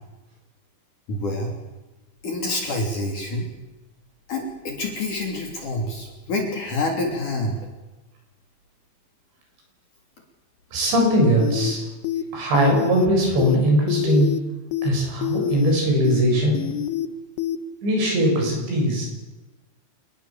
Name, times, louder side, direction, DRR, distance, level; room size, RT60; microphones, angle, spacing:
voice 1, 1.1-1.5 2.2-3.5 4.3-7.6, left 2 dB, 45° left, 1 dB, 4.2 m, -27 dB
voice 2, 10.7-11.8 12.3-14.3 14.8-16.6 17.8-19.1, equal, 60° right, 1 dB, 9.4 m, -20 dB
sound 1, 11.4-11.7 12.0-12.2 12.5-13.1 13.4-13.6 13.9-14.4 14.7-14.9 15.2-15.7 16.0-16.2 16.5-17.1 17.4-17.6, left 11 dB, 65° left, 2.8 m, -26 dB
28.0 x 21.0 x 7.5 m, 1.1 s
omnidirectional pair, 5.8 m